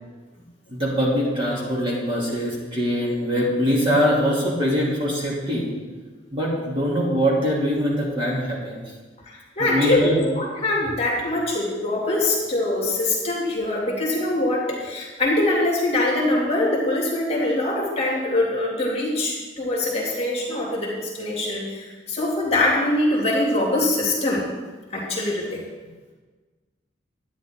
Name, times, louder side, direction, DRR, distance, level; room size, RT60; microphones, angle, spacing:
voice 1, 0.7-5.7 6.3-8.8 9.6-10.2, equal, 30° right, -6 dB, 3.1 m, -23 dB
voice 2, 9.3-24.4 24.9-25.6, left 2 dB, 35° left, -4 dB, 2.6 m, -23 dB
11.5 x 9.6 x 3.8 m, 1.3 s
head